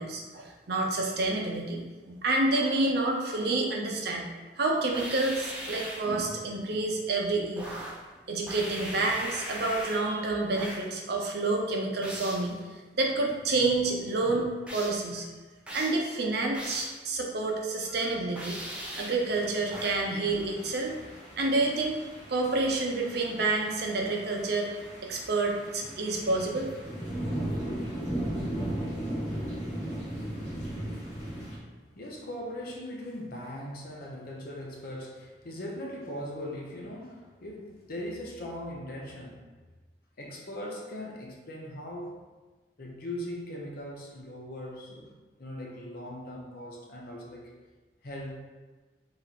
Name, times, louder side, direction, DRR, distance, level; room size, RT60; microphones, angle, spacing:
voice 1, 0.0-4.3 4.6-7.7 8.3-15.3 15.7-18.6 19.0-21.0 21.4-22.0 22.3-24.7 25.0-26.7, right 2 dB, 65° right, 0 dB, 0.6 m, -29 dB
sound 1, 4.9-6.1 7.6-8.1 8.5-10.1 10.5-10.9 12.0-12.5 14.7-15.1 15.7-16.0 16.5-17.0 18.4-19.3 19.7-20.1, right 1 dB, 5° right, 0.7 m, -39 dB
sound 2, 19.2-31.6, right 1 dB, 40° left, 1.2 m, -37 dB
voice 2, 29.5-39.5 40.2-42.2 42.8-45.1 45.4-47.5 48.0-48.5, left 1 dB, 60° left, -1 dB, 0.7 m, -40 dB
3.2 x 2.9 x 4.0 m, 1.3 s
head